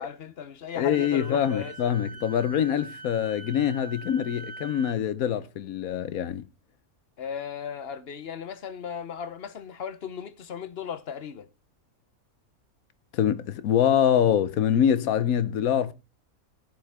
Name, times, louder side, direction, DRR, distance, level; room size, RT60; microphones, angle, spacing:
voice 1, 0.0-2.1 7.2-11.5, left 7 dB, 50° left, 1.0 m, -36 dB
voice 2, 0.8-6.5 13.1-15.9, left 9 dB, 75° left, 1.2 m, -24 dB
Wind instrument woodwind instrument, 0.9-5.0, right 3 dB, 90° right, 2.1 m, -43 dB
16.0 x 7.7 x 3.5 m
omnidirectional pair, 1.5 m